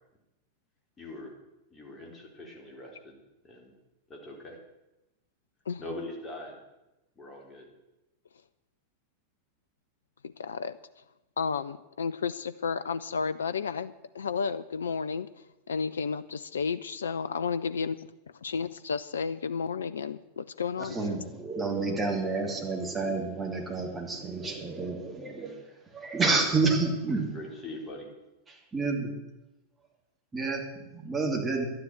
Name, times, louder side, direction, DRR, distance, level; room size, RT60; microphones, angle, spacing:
voice 1, 1.0-1.4 1.7-3.7 4.1-4.6 5.8-6.6 7.2-7.7 27.3-28.1, left 1 dB, 20° left, 0 dB, 3.6 m, -42 dB
voice 2, 10.4-10.8 11.4-18.1 18.4-21.2, left 5 dB, 70° left, 15 dB, 0.4 m, -32 dB
voice 3, 20.8-25.6 25.9-27.3 28.5-29.1 30.3-31.6, right 3 dB, 15° right, 0 dB, 2.8 m, -29 dB
11.5 x 9.9 x 7.9 m, 0.96 s
figure-of-eight pair, 90°, 0 cm